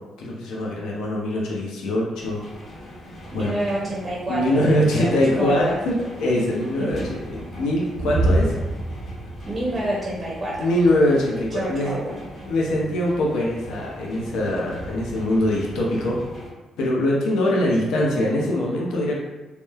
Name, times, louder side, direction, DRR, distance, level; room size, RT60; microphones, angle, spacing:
voice 1, 0.2-2.4 3.3-3.5 4.3-7.0 7.3-8.5 10.6-12.0 12.5-16.2 16.8-19.2, left 1 dB, 85° left, -3 dB, 0.5 m, -22 dB
sound 1, 2.2-16.5, right 1 dB, 55° left, 1.0 m, -32 dB
voice 2, 3.3-5.8 6.8-7.1 9.5-10.7 11.2-12.2, right 1 dB, 25° right, -6 dB, 0.6 m, -28 dB
2.9 x 2.0 x 2.3 m, 1.2 s
cardioid pair, 90°, 0 cm